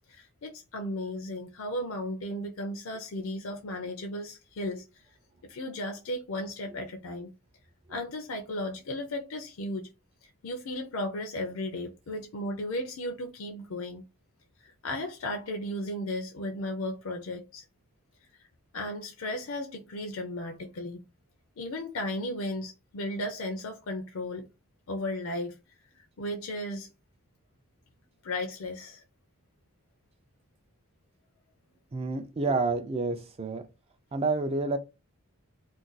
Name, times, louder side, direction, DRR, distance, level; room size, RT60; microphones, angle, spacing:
voice 1, 0.1-5.0 5.4-7.3 7.9-9.9 10.2-14.0 14.6-17.6 18.7-21.0 21.6-24.5 24.9-25.6 26.0-26.9 28.2-29.0, left 1 dB, 65° left, 0.4 m, -35 dB
voice 2, 31.9-33.7 34.1-34.8, right 3 dB, 25° right, 0.3 m, -29 dB
2.5 x 2.2 x 3.8 m
head